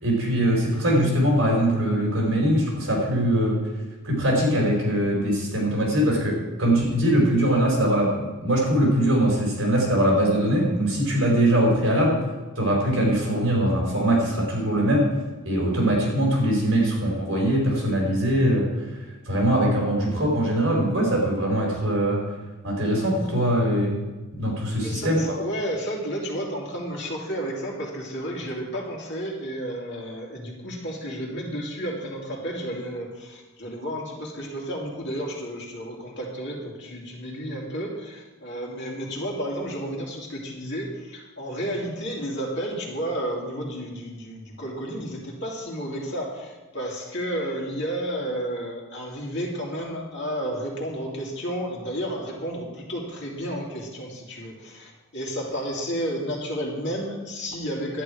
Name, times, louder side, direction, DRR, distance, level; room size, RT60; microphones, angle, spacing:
voice 1, 0.0-3.6 4.0-8.1 8.4-12.2 12.5-15.1 15.4-18.6 19.3-22.2 22.6-23.9 24.4-25.3, right 1 dB, 60° right, -2 dB, 4.5 m, -22 dB
voice 2, 24.8-58.0, equal, 50° left, -2 dB, 2.6 m, -32 dB
11.5 x 9.4 x 4.9 m, 1.2 s
head